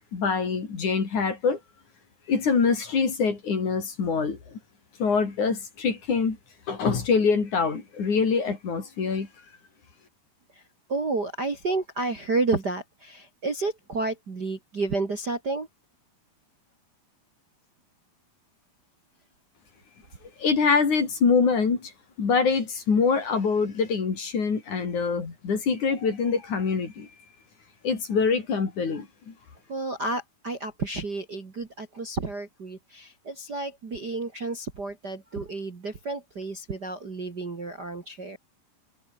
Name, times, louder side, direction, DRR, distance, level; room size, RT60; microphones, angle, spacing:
voice 1, 0.1-1.6 2.3-4.4 5.0-6.4 6.7-9.3 20.4-21.9 22.2-27.1 27.8-29.3, left 5 dB, 50° left, 5.3 m, -24 dB
voice 2, 10.9-15.7 29.7-38.4, right 3 dB, 30° right, 2.3 m, -31 dB
omnidirectional pair, 4.5 m